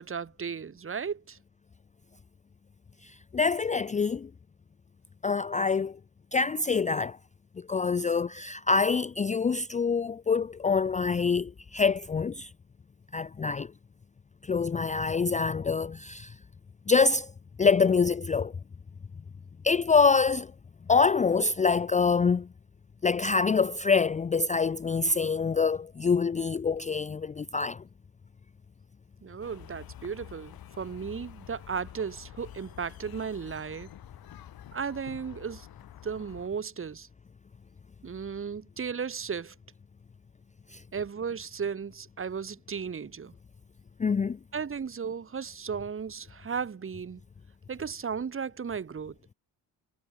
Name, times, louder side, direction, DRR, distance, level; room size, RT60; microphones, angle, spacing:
voice 1, 0.0-1.4 29.2-33.9 34.7-35.7 36.0-37.1 38.0-39.5 40.9-43.3 44.5-47.2 47.7-49.1, right 6 dB, 35° right, 3.3 m, -35 dB
voice 2, 3.0-4.3 5.2-6.0 6.3-7.2 7.6-12.5 13.1-13.7 14.4-16.4 16.9-17.3 17.6-18.5 19.6-20.5 20.9-22.5 23.0-27.8 40.7-40.8 44.0-44.4, left 5 dB, 20° left, 0.5 m, -25 dB
sound 1, 29.4-36.5, left 12 dB, 70° left, 5.6 m, -48 dB
cardioid pair, 125°, 38 cm